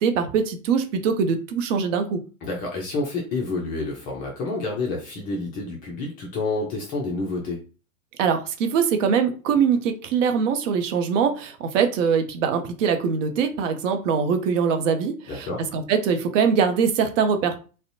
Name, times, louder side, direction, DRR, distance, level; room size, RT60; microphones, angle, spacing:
voice 1, 0.0-2.2 8.2-17.6, right 6 dB, 55° right, 7 dB, 0.6 m, -22 dB
voice 2, 2.4-7.6 15.3-15.6, left 3 dB, 20° left, -1 dB, 0.3 m, -29 dB
2.5 x 2.1 x 2.6 m, 0.36 s
hypercardioid pair, 105°, 45 cm